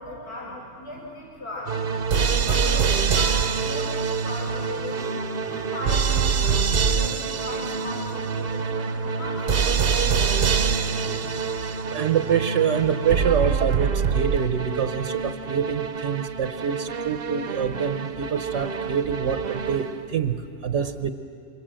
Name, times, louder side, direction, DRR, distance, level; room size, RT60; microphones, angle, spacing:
voice 1, 0.0-1.8 2.4-10.8, left 1 dB, 55° left, -4 dB, 6.2 m, -38 dB
sound 1, 1.7-20.2, right 6 dB, 55° right, 1.0 m, -25 dB
voice 2, 11.9-21.1, right 7 dB, 75° right, 9 dB, 1.2 m, -25 dB
27.5 x 25.5 x 7.6 m, 2.6 s
omnidirectional pair, 1.3 m